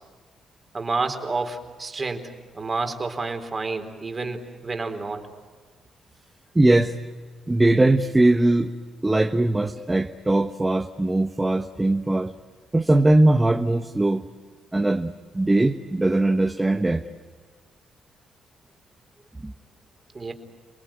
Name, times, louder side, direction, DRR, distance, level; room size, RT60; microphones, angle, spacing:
voice 1, 0.7-2.3 2.5-5.3 20.1-20.3, right 3 dB, 30° right, 5 dB, 4.1 m, -29 dB
voice 2, 6.5-7.0 7.5-8.7 9.0-12.3 12.7-14.2 14.7-17.0 19.4-19.5, right 2 dB, 15° right, 6 dB, 1.3 m, -20 dB
29.5 x 20.5 x 8.9 m, 1.4 s
cardioid pair, 90°, 0 cm